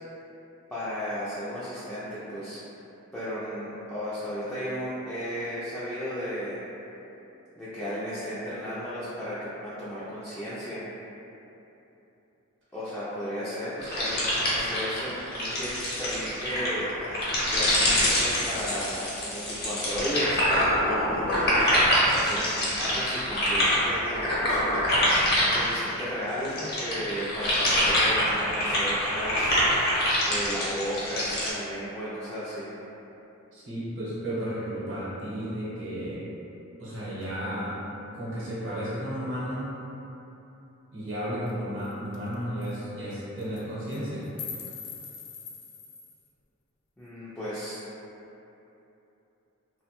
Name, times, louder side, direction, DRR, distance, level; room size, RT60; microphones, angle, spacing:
voice 1, 0.7-2.6 3.1-6.6 7.6-10.8 12.7-16.9 17.5-20.5 20.8-21.6 22.1-25.0 25.5-29.6 30.3-32.7 47.0-47.8, equal, 10° left, -12 dB, 0.3 m, -34 dB
sound 1, 13.8-26.0 26.4-31.5, equal, 50° left, 0.7 m, -25 dB
voice 2, 33.5-36.2 36.8-37.8 38.1-39.7 40.9-44.3, equal, 60° right, -9 dB, 0.8 m, -33 dB
sound 2, 41.5-41.6 41.8-41.9 42.1-42.3 42.6-42.7 43.4-43.6 43.9-46.2, left 6 dB, 90° left, 0.4 m, -41 dB
2.6 x 2.1 x 2.9 m, 3.0 s
head